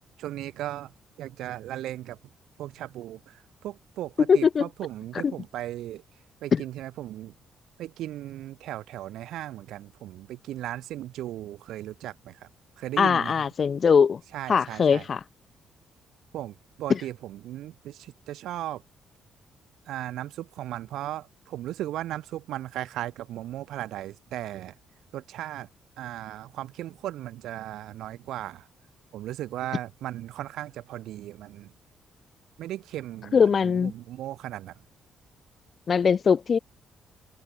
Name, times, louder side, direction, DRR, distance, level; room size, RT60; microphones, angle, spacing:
voice 1, 0.2-0.9 1.2-2.2 2.6-6.0 6.4-7.3 7.8-12.5 12.8-13.4 14.3-15.1 16.3-18.8 19.9-24.7 25.1-25.7 26.0-28.7 29.1-31.7 32.6-34.7, right 13 dB, 85° right, 0.9 m, -36 dB
voice 2, 4.3-4.7 5.2-5.3 6.5-6.6 13.0-14.2 14.5-15.2 16.9-17.0 33.3-33.9 35.9-36.6, left 6 dB, 45° left, 0.5 m, -21 dB
cardioid pair, 90°, 0 cm